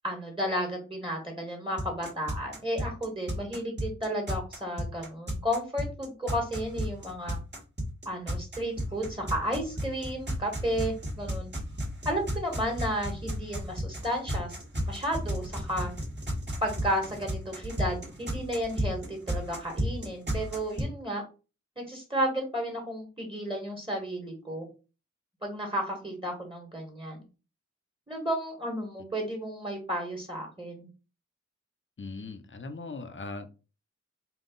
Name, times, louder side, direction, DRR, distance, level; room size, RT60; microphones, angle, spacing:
voice 1, 0.0-7.4 8.0-11.5 12.0-14.6 14.8-15.9 16.6-21.2 21.8-24.7 25.4-27.2 28.1-30.9, equal, 20° right, 2 dB, 1.6 m, -33 dB
sound 1, 1.8-20.8, equal, 35° right, 1.5 m, -33 dB
voice 2, 32.0-33.5, left 3 dB, 40° left, 7 dB, 0.7 m, -39 dB
3.8 x 2.4 x 3.8 m, 0.32 s
wide cardioid pair, 55°, 30 cm